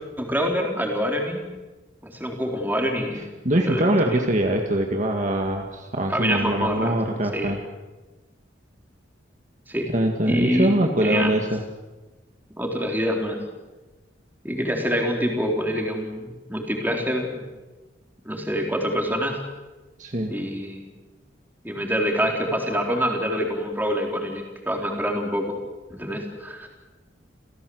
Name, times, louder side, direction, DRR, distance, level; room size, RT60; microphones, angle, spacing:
voice 1, 0.2-1.4 2.0-4.3 6.1-7.0 7.3-7.6 9.7-9.9 10.3-10.7 11.0-11.3 12.6-13.4 14.4-17.4 18.3-19.4 20.3-20.9 21.6-25.6 25.9-26.7, equal, 10° right, 1 dB, 3.9 m, -26 dB
voice 2, 3.4-7.6 9.9-11.6 20.0-20.3, right 1 dB, 40° right, 2 dB, 1.9 m, -23 dB
29.5 x 16.5 x 7.9 m, 1.2 s
head